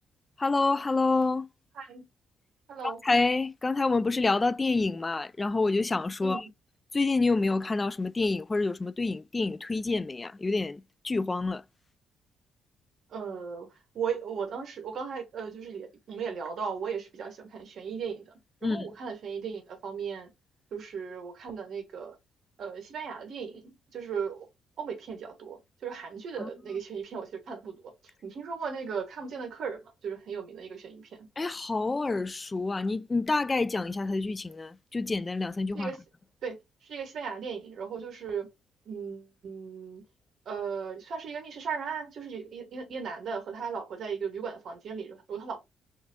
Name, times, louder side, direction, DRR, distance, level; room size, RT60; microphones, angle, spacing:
voice 1, 0.4-1.5 2.8-6.4 6.9-11.6 18.6-18.9 26.4-26.5 31.4-35.9, left 3 dB, 25° left, 0.3 m, -28 dB
voice 2, 2.7-3.0 6.2-6.4 13.1-18.3 18.6-20.3 20.7-22.1 22.6-24.5 24.8-31.3 35.7-36.0 36.4-38.5 38.8-40.0 40.4-45.6, right 6 dB, 65° right, 1.3 m, -37 dB
5.9 x 2.6 x 2.2 m
cardioid pair, 95°, 0 cm